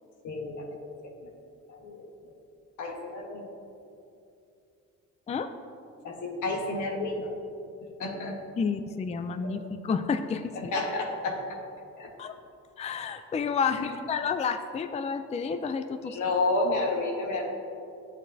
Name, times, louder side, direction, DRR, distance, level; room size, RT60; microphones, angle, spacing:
voice 1, 0.2-0.9 1.7-2.1 2.8-3.5 6.0-7.3 8.0-8.4 9.4-9.5 10.5-11.4 12.0-12.1 13.7-13.9 16.0-17.5, left 2 dB, 80° left, 1 dB, 1.4 m, -30 dB
voice 2, 8.6-10.7 12.2-12.3 12.8-16.2, left 5 dB, 20° left, 9 dB, 0.4 m, -30 dB
11.5 x 8.2 x 2.7 m, 2.6 s
cardioid pair, 90°, 30 cm